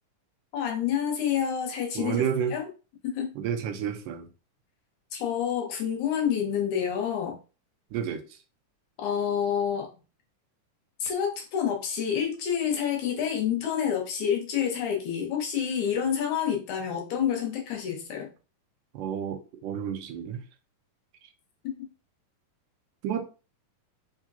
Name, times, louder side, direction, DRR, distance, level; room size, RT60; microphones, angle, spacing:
voice 1, 0.5-2.2 2.5-2.7 3.0-3.3 5.1-7.4 9.0-9.9 11.0-18.3 21.6-21.7, left 8 dB, 70° left, 2.3 m, -28 dB
voice 2, 2.0-2.5 3.4-4.3 7.9-8.2 18.9-20.4 23.0-23.3, right 8 dB, 80° right, 2.2 m, -30 dB
5.2 x 3.6 x 2.7 m
omnidirectional pair, 3.8 m